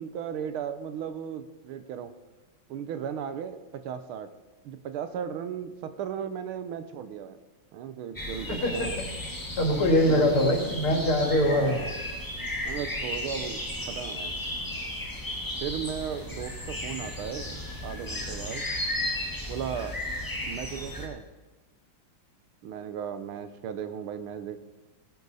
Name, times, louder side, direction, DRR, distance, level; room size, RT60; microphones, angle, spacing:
voice 1, 0.0-2.1 2.7-4.3 4.6-7.4 7.7-8.9 10.0-10.6 11.5-11.9 12.6-14.3 15.6-17.6 17.8-18.6 19.5-19.9 20.5-21.2 22.6-24.6, right 8 dB, 80° right, 11 dB, 1.7 m, -36 dB
sound 1, 8.2-21.1, left 1 dB, 10° left, 1.2 m, -35 dB
voice 2, 9.6-11.8, left 1 dB, 85° left, 1 dB, 3.2 m, -22 dB
18.5 x 10.5 x 4.1 m, 1.2 s
omnidirectional pair, 2.3 m